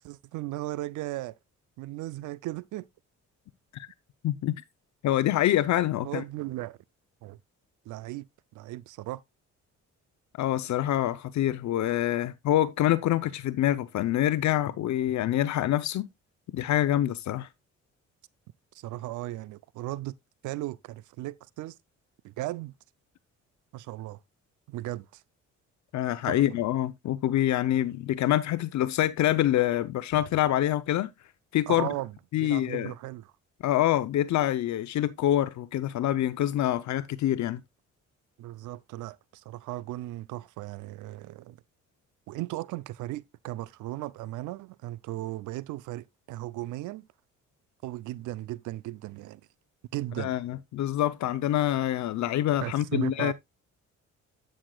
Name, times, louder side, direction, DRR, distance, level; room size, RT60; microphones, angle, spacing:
voice 1, 0.0-1.4 1.8-2.9 6.0-6.8 7.2-7.4 7.9-8.3 8.5-9.2 18.7-20.1 20.4-21.8 22.2-22.7 23.7-24.2 24.7-25.2 26.2-26.4 31.7-32.1 32.4-33.3 38.4-41.6 42.3-47.0 47.8-49.4 49.9-50.3 52.6-53.3, right 16 dB, 80° right, 0.4 m, -36 dB
voice 2, 5.0-6.2 10.4-16.1 16.5-17.5 25.9-31.1 31.5-31.9 32.3-32.9 33.6-37.6 50.2-53.3, left 13 dB, 65° left, 0.6 m, -26 dB
11.5 x 6.4 x 2.3 m
cardioid pair, 90°, 30 cm